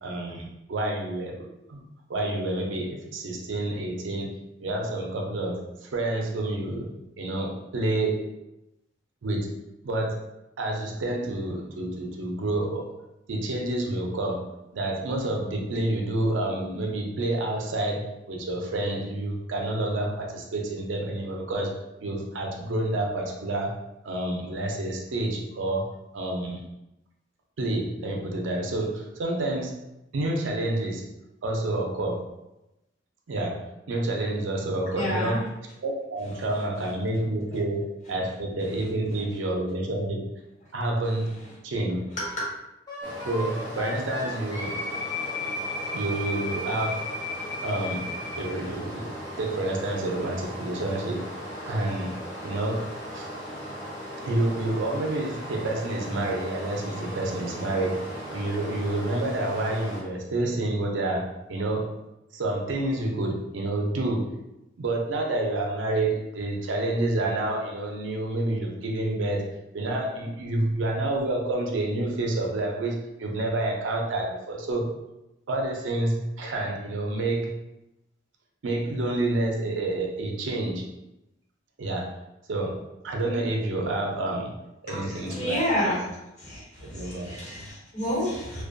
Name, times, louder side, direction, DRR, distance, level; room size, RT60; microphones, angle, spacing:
voice 1, 0.0-1.4 1.7-4.3 4.6-6.9 7.2-8.2 9.2-9.5 9.8-10.2 10.6-12.9 13.3-23.8 24.0-25.9 26.1-26.6 27.6-29.7 30.1-31.1 31.4-32.3 33.3-35.5 35.8-40.3 40.7-42.0 43.3-44.8 45.9-47.1 47.6-51.3 51.6-52.1 52.4-53.3 54.2-61.9 62.3-64.3 64.8-69.5 69.7-74.9 75.5-77.6 78.6-80.8 81.8-82.1 82.5-84.5 84.8-86.0 86.8-87.4, right 2 dB, 75° right, 0 dB, 0.5 m, -29 dB
voice 2, 34.9-35.4 36.3-36.4 38.7-38.8 42.2-42.4 84.9-86.0 86.4-88.6, left 1 dB, 40° left, -7 dB, 1.1 m, -30 dB
Wind instrument woodwind instrument, 42.9-48.5, left 2 dB, 20° left, 0.5 m, -34 dB
Stream, 43.0-60.0, equal, 60° left, 0.7 m, -38 dB
2.5 x 2.2 x 2.5 m, 0.93 s
head